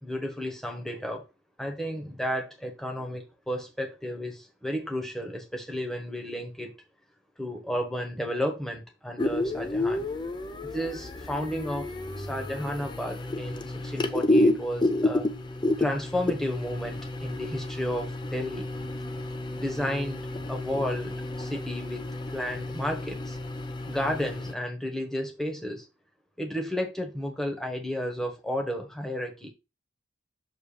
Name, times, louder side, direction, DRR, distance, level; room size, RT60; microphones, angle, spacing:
voice 1, 0.0-1.2 1.6-6.7 7.4-10.1 10.7-11.9 12.2-15.3 15.8-18.7 19.5-22.1 22.3-23.4 23.8-25.8 26.4-29.5, equal, ahead, 1.1 m, -32 dB
sound 1, 9.2-24.5, left 2 dB, 25° left, 0.4 m, -30 dB
6.8 x 3.1 x 4.9 m
head